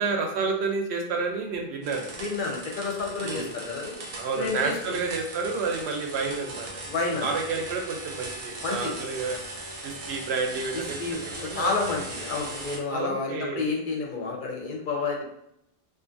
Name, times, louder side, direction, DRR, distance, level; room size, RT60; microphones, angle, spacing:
voice 1, 0.0-2.1 3.2-3.5 4.2-6.7 7.2-9.4 9.8-11.0 11.5-11.7 12.9-13.7, right 4 dB, 90° right, 2 dB, 0.9 m, -30 dB
sound 1, 1.8-12.8, right 2 dB, 60° right, 0.7 m, -39 dB
voice 2, 2.2-3.9 4.3-5.0 6.8-7.3 8.6-9.0 10.7-15.2, left 4 dB, 60° left, 0 dB, 0.6 m, -30 dB
2.5 x 2.4 x 2.5 m, 0.79 s
omnidirectional pair, 1.1 m